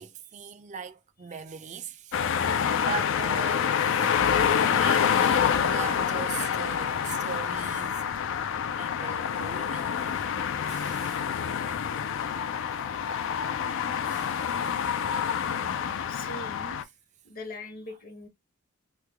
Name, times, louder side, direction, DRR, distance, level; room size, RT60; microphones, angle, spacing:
voice 1, 0.0-2.5 2.8-8.0 8.8-9.9 10.7-11.3 14.1-14.7 15.5-15.6, right 6 dB, 35° right, 0.4 m, -40 dB
sound 1, 2.1-16.8, left 7 dB, 65° left, 0.4 m, -27 dB
voice 2, 16.1-16.8 17.2-18.3, left 2 dB, 45° left, 0.9 m, -41 dB
3.1 x 2.2 x 3.4 m
head